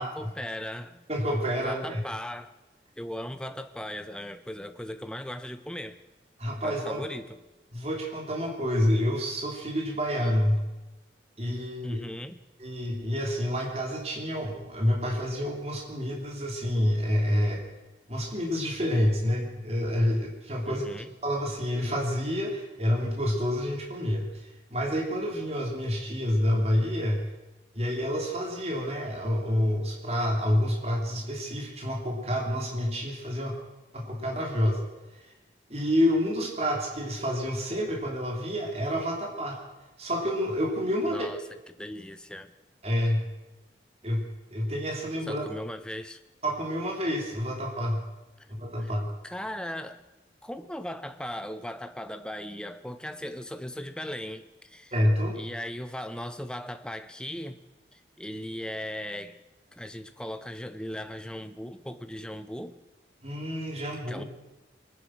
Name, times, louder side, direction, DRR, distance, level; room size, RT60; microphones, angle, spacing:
voice 1, 0.0-1.0 1.6-2.5 3.0-6.0 6.6-7.4 11.8-12.4 20.7-21.1 41.1-41.4 41.8-42.5 45.3-46.2 48.4-48.5 48.8-48.9 49.2-50.0 50.4-54.9 55.4-57.6 57.9-59.4 59.7-62.8 64.1-64.2, left 1 dB, 5° left, 0.7 m, -38 dB
voice 2, 1.1-2.0 6.4-7.0 7.7-10.6 11.4-12.0 12.6-17.6 18.1-20.8 21.2-27.3 27.7-33.6 33.9-34.8 35.2-35.3 35.7-39.6 40.0-41.3 42.8-43.3 44.0-45.4 46.4-48.0 48.5-49.1 54.9-55.4 63.2-64.2, equal, 35° right, 2.9 m, -28 dB
22.5 x 10.5 x 6.2 m
head